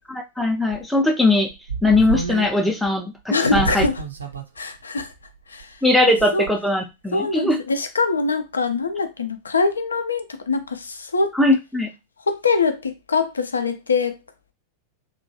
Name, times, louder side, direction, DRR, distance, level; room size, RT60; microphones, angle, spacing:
voice 1, 0.1-1.5 1.8-3.8 5.8-7.6 11.3-11.9, left 2 dB, ahead, 0.4 m, -20 dB
sound 1, 0.7-0.9 1.5-2.5 2.8-2.9 3.5-4.4 4.7-4.8 5.6-5.9 6.2-6.5, right 4 dB, 75° right, 0.4 m, -28 dB
voice 2, 3.3-4.0 4.6-5.1 5.5-5.7 6.3-6.5 7.1-11.4 12.3-14.2, left 4 dB, 75° left, 0.4 m, -23 dB
2.9 x 2.4 x 2.7 m
figure-of-eight pair, 90°, 0 cm